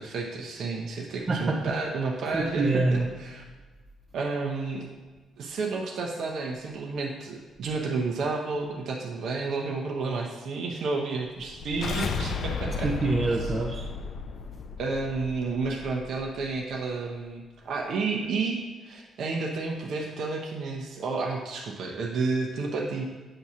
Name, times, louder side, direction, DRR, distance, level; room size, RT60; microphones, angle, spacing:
voice 1, 0.0-3.4 4.1-4.9 5.4-12.9 14.8-23.0, right 4 dB, 70° right, -1 dB, 0.8 m, -31 dB
voice 2, 1.3-1.6 2.3-3.1 12.8-13.9, right 3 dB, 30° right, -1 dB, 0.6 m, -25 dB
sound 1, 11.4-16.5, left 4 dB, 65° left, 0.4 m, -34 dB
7.7 x 2.8 x 6.0 m, 1.3 s
cardioid pair, 90°, 0 cm